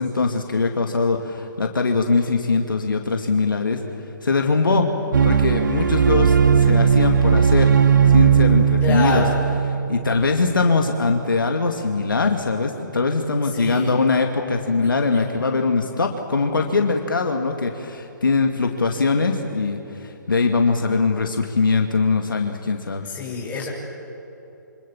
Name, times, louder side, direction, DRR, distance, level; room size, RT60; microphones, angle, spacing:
voice 1, 0.0-3.8 4.2-4.9 5.2-7.7 8.1-9.3 9.9-23.1, left 4 dB, 85° left, 3 dB, 2.2 m, -21 dB
sound 1, 5.1-10.4, right 7 dB, 70° right, 1.8 m, -17 dB
voice 2, 8.8-9.4 13.5-13.9 15.1-15.3 23.0-23.7, left 4 dB, 15° left, -4 dB, 6.5 m, -26 dB
27.0 x 25.5 x 7.2 m, 2.9 s
hypercardioid pair, 145°, 11 cm